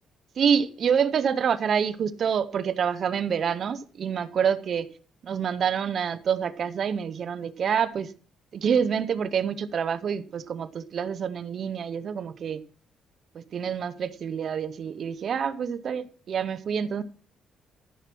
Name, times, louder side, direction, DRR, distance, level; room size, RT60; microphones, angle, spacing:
voice 1, 0.4-4.9 5.2-8.1 8.5-12.6 13.3-17.0, right 7 dB, 55° right, 0.8 m, -27 dB
13.5 x 6.0 x 6.1 m
cardioid pair, 90°, 0 cm